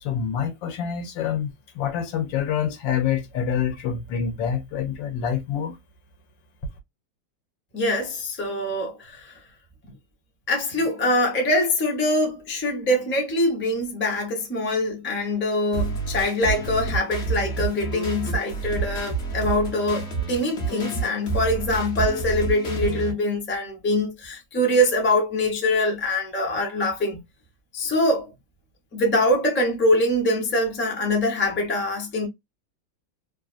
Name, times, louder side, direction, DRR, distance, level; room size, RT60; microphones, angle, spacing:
voice 1, 0.0-5.8, left 8 dB, 75° left, 1.4 m, -26 dB
voice 2, 7.7-9.3 10.5-27.2 27.7-28.3 28.9-32.3, left 1 dB, 15° left, 0.4 m, -24 dB
sound 1, 15.7-23.1, right 5 dB, 45° left, 1.0 m, -29 dB
3.2 x 2.3 x 2.4 m
omnidirectional pair, 2.1 m